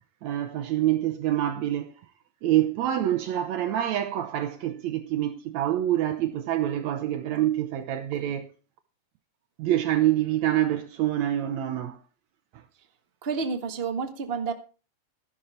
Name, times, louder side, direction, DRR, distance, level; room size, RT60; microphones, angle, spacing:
voice 1, 0.2-1.9 2.4-8.5 9.6-12.0, right 12 dB, 70° right, 1.9 m, -26 dB
voice 2, 13.2-14.5, right 5 dB, 30° right, 1.2 m, -29 dB
13.0 x 11.5 x 4.4 m
omnidirectional pair, 3.8 m